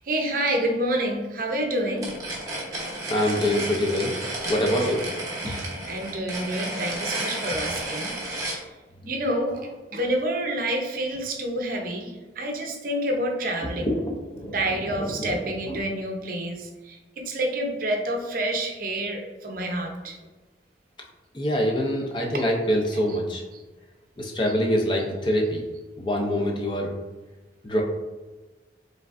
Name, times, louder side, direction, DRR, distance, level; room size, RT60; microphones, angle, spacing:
voice 1, 0.0-2.1 5.5-8.7 9.0-13.9 14.5-20.2 22.3-22.4, right 1 dB, 50° right, 2 dB, 0.6 m, -28 dB
sound 1, 2.0-8.6, right 1 dB, 20° right, 0.9 m, -32 dB
voice 2, 3.1-4.2 4.5-5.1 5.4-5.5 9.0-9.1 13.7-14.6 14.8-15.8 21.3-23.4 24.2-25.6 26.0-26.9 27.6-27.8, equal, 25° left, 0 dB, 0.5 m, -25 dB
5.0 x 3.2 x 2.5 m, 1.2 s
head